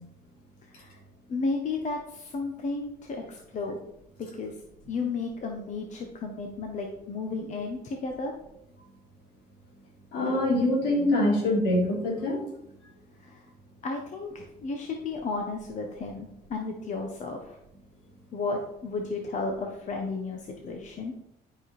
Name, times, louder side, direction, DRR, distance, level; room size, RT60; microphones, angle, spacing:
voice 1, 1.3-3.8 4.2-4.6 4.9-8.3 13.2-13.4 13.8-17.6 18.3-21.1, left 3 dB, 45° left, 2 dB, 1.2 m, -33 dB
voice 2, 10.1-12.5, left 1 dB, 75° left, -2 dB, 3.7 m, -24 dB
11.5 x 5.3 x 4.4 m, 0.79 s
cardioid pair, 110°, 17 cm